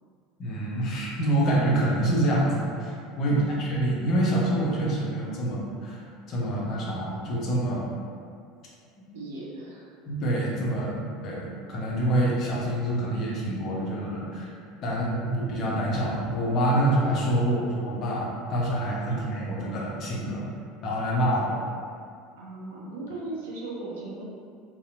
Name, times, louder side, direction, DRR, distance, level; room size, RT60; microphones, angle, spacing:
voice 1, 0.4-6.0 6.3-7.9 10.1-14.5 14.8-20.5 20.8-21.5, right 1 dB, 50° left, -4 dB, 0.6 m, -26 dB
voice 2, 3.3-3.6 9.1-9.9 19.1-19.2 22.4-24.2, right 2 dB, 75° right, -5 dB, 0.5 m, -37 dB
2.7 x 2.0 x 2.5 m, 2.3 s
hypercardioid pair, 75°, 0 cm